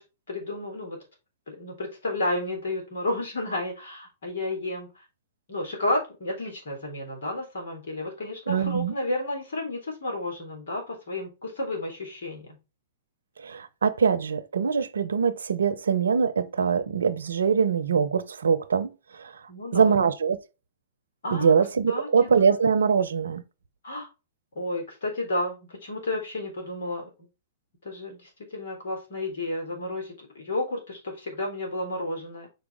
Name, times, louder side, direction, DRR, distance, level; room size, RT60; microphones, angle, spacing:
voice 1, 0.3-1.0 1.5-4.9 5.5-12.6 19.5-19.9 21.2-21.5 21.9-22.3 23.8-24.1 24.5-27.1 27.8-32.5, left 2 dB, 70° left, 3.5 m, -32 dB
voice 2, 8.5-8.9 13.4-19.4 19.7-20.4 21.3-23.4, right 6 dB, 80° right, 0.6 m, -23 dB
5.6 x 4.8 x 3.6 m
hypercardioid pair, 115°, 0 cm